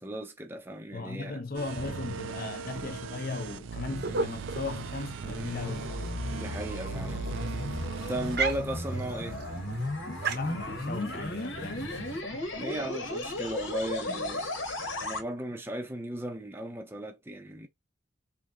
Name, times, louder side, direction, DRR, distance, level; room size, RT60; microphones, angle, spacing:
voice 1, 0.0-1.4 6.3-7.3 8.1-9.4 12.5-14.5 15.0-17.7, right 1 dB, 10° right, 0.6 m, -36 dB
voice 2, 0.9-5.9 10.3-11.9 12.3-12.5 14.1-14.2, left 3 dB, 50° left, 0.7 m, -37 dB
sound 1, 1.5-8.4, right 6 dB, 75° right, 0.4 m, -39 dB
sound 2, 4.0-12.2, right 4 dB, 55° right, 0.7 m, -38 dB
sound 3, 5.1-15.2, left 2 dB, 75° left, 1.2 m, -35 dB
3.3 x 2.7 x 3.7 m
head